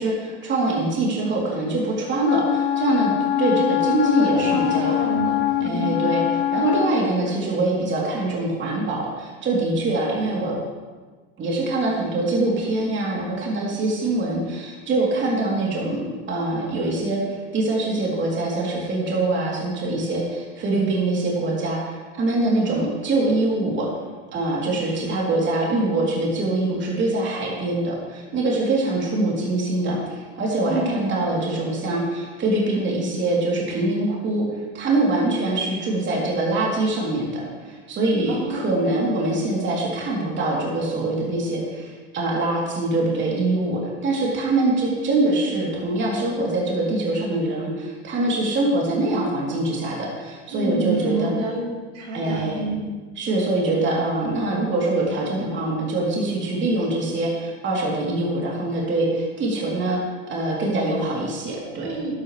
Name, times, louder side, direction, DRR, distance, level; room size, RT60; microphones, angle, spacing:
voice 1, 0.0-3.1 3.4-5.1 5.6-10.5 11.4-23.9 24.3-51.3 52.1-52.6 53.1-60.0 60.3-62.0, right 2 dB, 35° right, -4 dB, 3.2 m, -24 dB
Wind instrument woodwind instrument, 2.2-7.0, left 13 dB, 40° left, 0.8 m, -23 dB
voice 2, 3.8-5.9 30.6-31.1 38.3-38.8 50.5-51.6 51.9-52.8 61.8-62.1, right 2 dB, 80° right, -4 dB, 3.9 m, -28 dB
12.5 x 12.0 x 3.3 m, 1.4 s
supercardioid pair, 110°, 31 cm